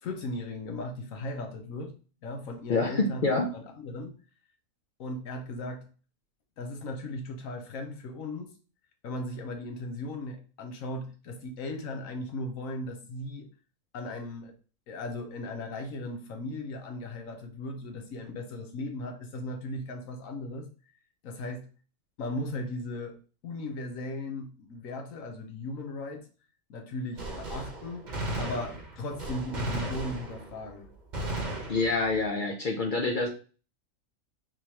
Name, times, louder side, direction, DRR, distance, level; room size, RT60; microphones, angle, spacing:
voice 1, 0.0-1.9 2.2-4.1 5.0-5.9 6.6-8.5 9.0-13.5 13.9-14.5 14.9-20.7 21.2-21.7 22.2-23.1 23.4-26.2 26.7-28.1 28.4-30.9, left 2 dB, 75° left, 5 dB, 1.2 m, -37 dB
voice 2, 2.7-3.6 31.7-33.3, left 3 dB, 60° left, 1 dB, 0.5 m, -27 dB
Gunshot gunfire, 27.2-30.7 31.1-32.2, right 2 dB, 40° right, 0.9 m, -35 dB
3.8 x 3.1 x 2.8 m, 0.36 s
omnidirectional pair, 1.4 m